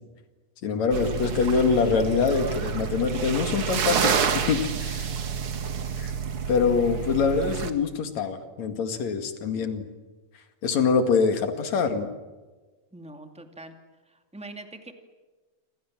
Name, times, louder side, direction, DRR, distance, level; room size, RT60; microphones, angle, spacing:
voice 1, 0.6-5.1 6.0-6.1 6.5-9.8 10.6-12.1, left 5 dB, 55° left, 7 dB, 3.2 m, -24 dB
sound 1, 0.9-7.7, right 7 dB, 45° right, 2.1 m, -28 dB
voice 2, 12.9-13.7 14.1-14.9, right 2 dB, 5° right, 5 dB, 1.5 m, -43 dB
28.0 x 26.5 x 7.5 m, 1.3 s
omnidirectional pair, 4.0 m